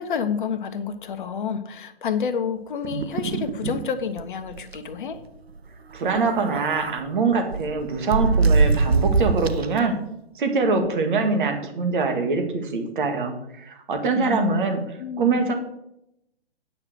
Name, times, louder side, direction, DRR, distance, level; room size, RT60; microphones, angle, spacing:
voice 1, 0.0-5.2 10.7-10.9 14.1-14.6 15.0-15.5, left 6 dB, 50° left, 10 dB, 1.1 m, -29 dB
sound 1, 2.8-3.8 4.2-4.3 4.6-4.8 6.0-7.0 7.5-9.8, right 4 dB, 75° right, 0.9 m, -23 dB
voice 2, 5.9-9.9 10.4-14.8 15.2-15.5, right 4 dB, 50° right, 5 dB, 2.0 m, -23 dB
8.9 x 5.8 x 6.4 m, 0.82 s
figure-of-eight pair, 125°, 32 cm